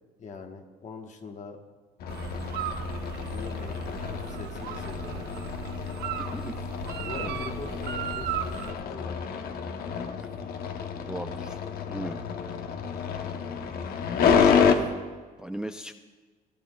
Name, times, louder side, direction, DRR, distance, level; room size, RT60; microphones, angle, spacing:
voice 1, 0.2-1.6 3.3-5.3 7.0-9.7, left 4 dB, 45° left, 4 dB, 1.3 m, -42 dB
sound 1, 2.0-14.7, left 6 dB, 65° left, 0.9 m, -29 dB
sound 2, 2.1-8.7, right 9 dB, 75° right, 0.7 m, -36 dB
voice 2, 6.2-6.5 7.1-7.3 11.0-11.6 11.9-12.2 14.3-14.9 15.4-15.9, right 1 dB, 5° right, 8 dB, 0.3 m, -37 dB
17.5 x 11.0 x 2.3 m, 1.4 s
cardioid pair, 110°, 17 cm